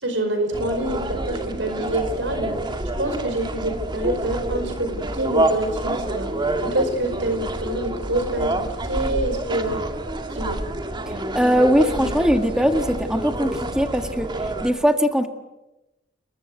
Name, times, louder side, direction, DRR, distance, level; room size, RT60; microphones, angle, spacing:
voice 1, 0.0-2.7 3.0-6.3 6.6-9.8 10.3-10.6, right 1 dB, 80° right, 6 dB, 5.0 m, -26 dB
sound 1, 0.5-14.7, right 1 dB, 25° right, 2.0 m, -28 dB
voice 2, 11.1-14.3 14.6-15.3, equal, 5° right, 6 dB, 1.8 m, -20 dB
29.5 x 22.5 x 7.9 m, 0.96 s
head